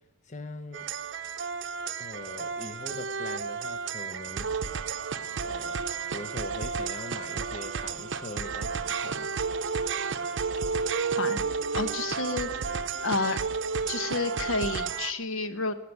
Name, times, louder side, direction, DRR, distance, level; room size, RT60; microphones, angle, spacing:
voice 1, 0.2-0.9 2.0-4.7 5.4-5.8 6.1-9.3, left 2 dB, 35° left, 8 dB, 0.7 m, -42 dB
sound 1, 0.7-15.1, right 5 dB, 60° right, 0.6 m, -32 dB
voice 2, 11.7-12.5 13.0-13.4 13.9-15.8, left 3 dB, 80° left, 10 dB, 1.0 m, -30 dB
17.5 x 5.9 x 9.1 m, 1.0 s
head